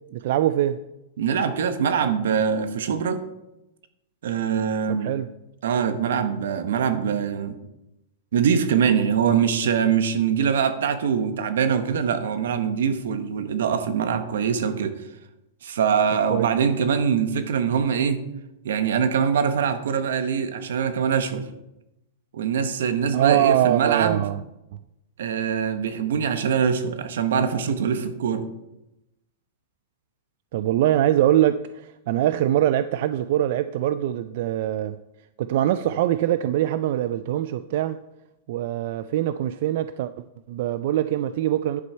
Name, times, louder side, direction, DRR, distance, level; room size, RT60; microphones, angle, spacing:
voice 1, 0.1-0.8 4.9-5.3 16.3-16.5 23.1-24.4 24.7-24.8 30.5-35.0 35.4-38.0 38.5-40.1 40.5-41.8, right 12 dB, 45° right, 12 dB, 0.3 m, -23 dB
voice 2, 1.2-3.2 4.2-5.1 5.6-7.6 8.3-15.0 15.6-18.2 18.6-21.5 22.3-24.2 25.2-28.5, right 7 dB, 75° right, 10 dB, 1.0 m, -23 dB
10.5 x 6.3 x 4.4 m, 0.91 s
supercardioid pair, 170°, 0 cm